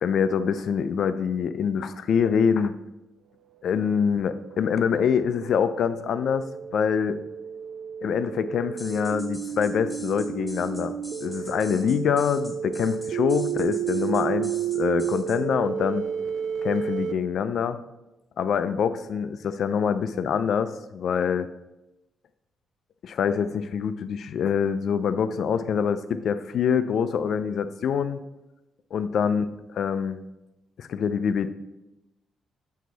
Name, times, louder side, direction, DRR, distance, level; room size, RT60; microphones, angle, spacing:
voice 1, 0.0-2.7 3.6-6.4 6.7-7.2 8.0-10.9 11.2-16.1 16.6-17.8 18.4-21.5 23.0-28.2 28.9-30.2 30.8-31.5, left 7 dB, 65° left, 12 dB, 0.4 m, -25 dB
sound 1, 3.9-17.1, right 9 dB, 70° right, 0.5 m, -32 dB
sound 2, 8.8-15.4, left 1 dB, ahead, 1.0 m, -45 dB
7.2 x 4.7 x 4.0 m, 0.98 s
cardioid pair, 90°, 0 cm